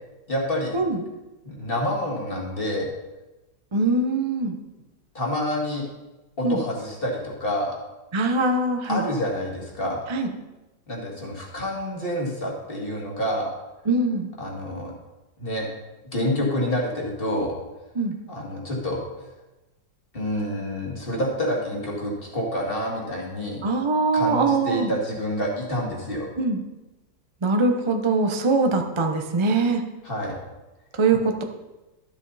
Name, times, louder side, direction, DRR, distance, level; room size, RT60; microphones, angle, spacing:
voice 1, 0.3-0.8 1.4-2.9 5.1-5.9 6.4-7.8 8.9-10.0 10.9-13.5 14.4-14.9 15.4-15.7 16.1-17.5 18.3-19.0 20.1-23.6 24.1-26.3 30.0-30.4, equal, 30° left, -2 dB, 2.1 m, -28 dB
voice 2, 3.7-4.5 6.4-6.6 8.1-9.0 10.1-10.3 13.9-14.3 18.0-18.1 23.6-24.9 26.4-26.6 27.4-29.8 31.0-31.4, right 3 dB, 45° right, 4 dB, 0.3 m, -22 dB
12.5 x 7.0 x 4.1 m, 1.1 s
omnidirectional pair, 2.0 m